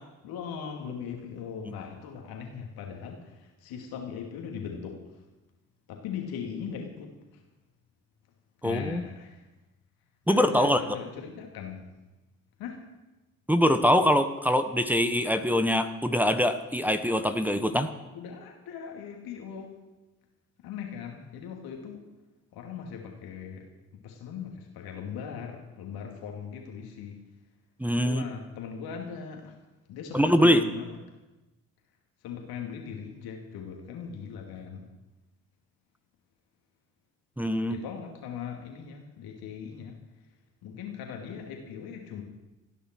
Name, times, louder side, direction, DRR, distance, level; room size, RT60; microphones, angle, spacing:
voice 1, 0.2-3.2 3.6-5.0 5.9-7.4 8.6-9.4 10.3-11.8 12.6-12.8 18.1-19.7 20.6-22.0 22.5-23.6 24.0-27.2 27.8-29.5 29.9-31.0 32.2-34.8 37.7-39.9 40.6-42.2, left 7 dB, 65° left, 2 dB, 2.7 m, -39 dB
voice 2, 8.6-9.0 10.3-10.8 13.5-17.9 27.8-28.2 30.1-30.6 37.4-37.8, equal, 5° right, 7 dB, 1.2 m, -23 dB
28.5 x 10.0 x 4.7 m, 1.1 s
figure-of-eight pair, 40°, 40 cm